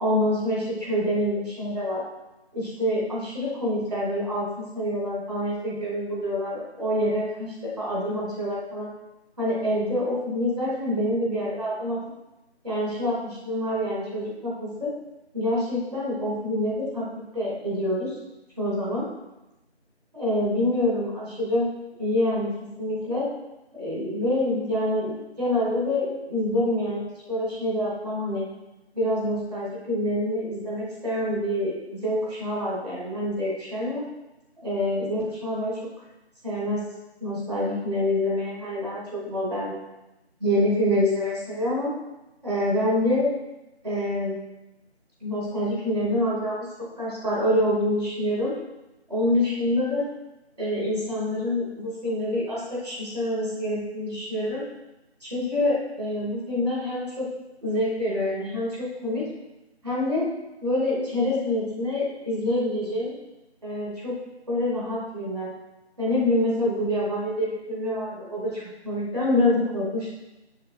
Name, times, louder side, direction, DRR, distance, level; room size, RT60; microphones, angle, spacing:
voice 1, 0.0-2.0 2.5-8.9 9.4-12.0 12.6-14.9 15.3-17.1 17.3-18.1 18.6-19.0 20.1-21.7 22.0-22.5 22.8-23.3 23.7-28.4 28.9-34.0 34.6-35.8 36.4-36.8 37.2-39.8 40.4-41.9 42.4-43.3 43.8-44.4 45.2-46.7 47.0-48.5 49.1-50.0 50.6-54.6 55.2-57.3 57.6-58.7 59.0-59.2 59.8-60.3 60.6-63.1 63.6-64.1 64.5-65.5 66.0-70.1, left 1 dB, 35° right, -7 dB, 2.5 m, -26 dB
7.5 x 7.1 x 2.5 m, 0.97 s
figure-of-eight pair, 170°, 33 cm